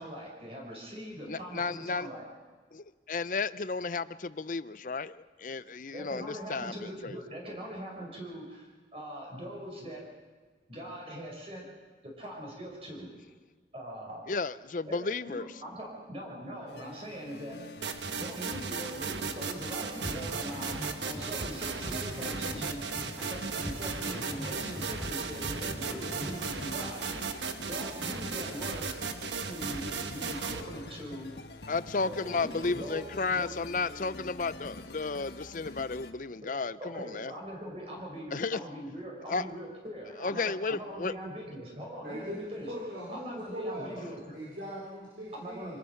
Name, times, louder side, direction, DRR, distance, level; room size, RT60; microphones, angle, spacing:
voice 1, 0.0-2.2 5.9-8.7 8.9-10.0 10.7-11.7 12.0-13.1 13.7-14.2 14.9-17.6 18.1-22.8 23.2-27.0 27.7-28.9 29.5-31.3 32.0-33.5 36.4-36.5 36.8-42.7 43.1-44.4 45.3-45.8, equal, 35° right, -1 dB, 5.2 m, -41 dB
voice 2, 1.3-2.1 2.7-7.2 14.3-15.5 31.7-37.3 38.3-38.6 39.3-39.4 40.2-41.1, left 4 dB, 45° left, 15 dB, 0.6 m, -33 dB
sound 1, 16.7-36.1, left 2 dB, 70° left, 1.5 m, -47 dB
sound 2, 17.8-30.6, right 5 dB, 90° right, 1.4 m, -36 dB
sound 3, 20.0-27.2, equal, 5° right, 5.6 m, -42 dB
voice 3, 42.0-42.4 42.7-45.8, equal, 65° right, -6 dB, 4.6 m, -40 dB
25.5 x 19.5 x 5.9 m, 1.4 s
head